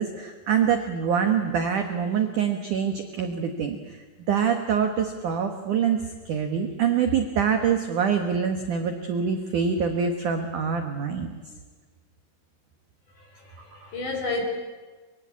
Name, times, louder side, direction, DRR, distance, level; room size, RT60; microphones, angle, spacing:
voice 1, 0.0-4.0 4.3-11.3, right 7 dB, 75° right, 6 dB, 1.8 m, -25 dB
voice 2, 13.2-14.4, left 3 dB, 40° left, 3 dB, 5.1 m, -32 dB
24.5 x 22.5 x 8.5 m, 1.4 s
omnidirectional pair, 5.8 m